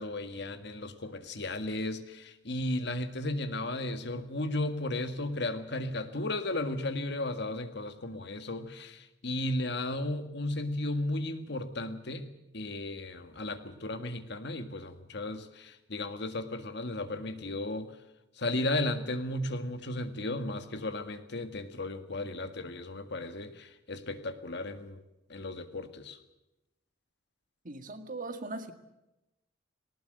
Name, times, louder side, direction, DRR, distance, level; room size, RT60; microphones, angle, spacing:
voice 1, 0.0-12.3 12.5-17.9 18.4-25.0 25.3-26.2, left 2 dB, 65° left, 9 dB, 1.8 m, -35 dB
voice 2, 27.6-28.7, right 3 dB, 45° right, 8 dB, 1.9 m, -39 dB
19.0 x 19.0 x 8.0 m, 0.94 s
head